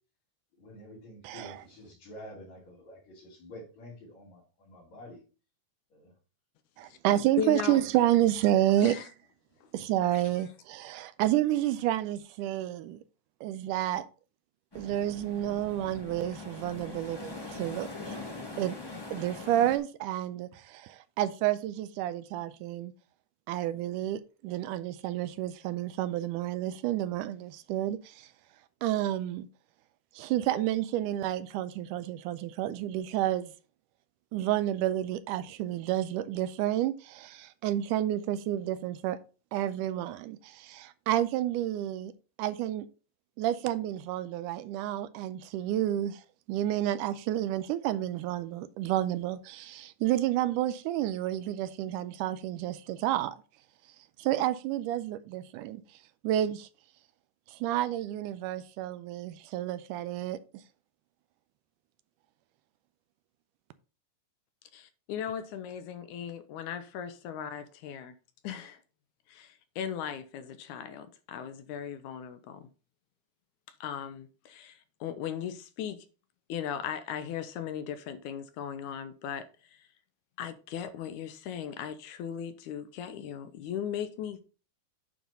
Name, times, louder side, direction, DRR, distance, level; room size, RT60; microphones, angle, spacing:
voice 1, 0.6-5.2 5.9-6.1, equal, 60° left, 4.0 m, -48 dB
voice 2, 1.2-1.6 6.8-8.9 9.7-13.0 13.4-14.1 14.8-18.2 18.6-18.8 19.1-22.9 23.5-28.3 28.8-29.5 30.2-33.5 34.3-39.2 39.5-42.1 42.4-42.9 43.4-46.2 46.5-53.4 54.2-55.8 56.2-56.7 57.5-60.4, right 13 dB, 85° right, 2.1 m, -30 dB
voice 3, 7.4-7.8 8.8-9.1 64.7-68.1 68.4-68.8 69.3-72.7 73.8-76.1 76.5-79.4 79.7-79.9 80.4-84.4, left 8 dB, 80° left, 2.0 m, -37 dB
sound 1, 14.7-19.8, left 3 dB, 25° left, 0.5 m, -42 dB
9.3 x 3.9 x 5.4 m
omnidirectional pair, 3.7 m